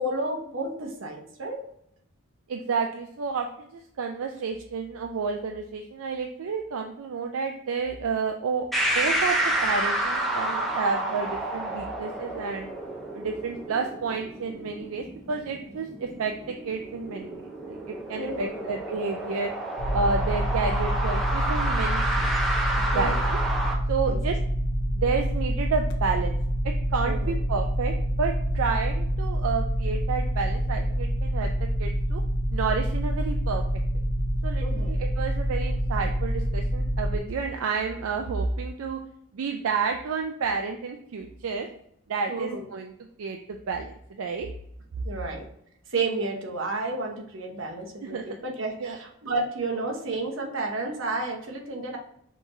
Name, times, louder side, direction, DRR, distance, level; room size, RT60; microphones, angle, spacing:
voice 1, 0.0-1.6 18.2-18.7 22.9-23.3 24.1-24.4 27.0-27.3 34.6-34.9 42.3-42.6 45.0-45.5 45.9-52.0, right 2 dB, 60° right, 1 dB, 0.9 m, -31 dB
voice 2, 2.5-8.7 8.9-12.7 13.1-19.5 19.9-22.3 22.8-23.4 23.9-24.4 24.9-26.4 26.6-32.2 32.5-33.6 34.4-39.0 39.3-41.7 42.1-42.9 43.2-44.5 48.0-48.2 48.8-49.0, right 5 dB, 75° right, 3 dB, 0.4 m, -30 dB
sound 1, 8.7-23.7, right 1 dB, ahead, 0.6 m, -30 dB
sound 2, 19.8-37.2, equal, 55° left, 0.6 m, -27 dB
5.8 x 3.0 x 2.6 m, 0.71 s
head